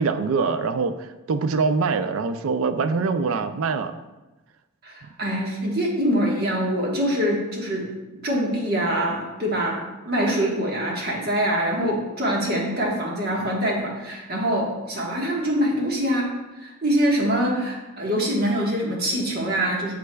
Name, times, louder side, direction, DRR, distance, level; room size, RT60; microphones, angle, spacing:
voice 1, 0.0-4.0, right 4 dB, 75° right, 10 dB, 0.4 m, -24 dB
voice 2, 4.8-7.9 8.2-9.8 10.0-16.3 16.6-19.9, equal, 45° right, -2 dB, 1.4 m, -24 dB
8.1 x 6.7 x 2.3 m, 1.1 s
head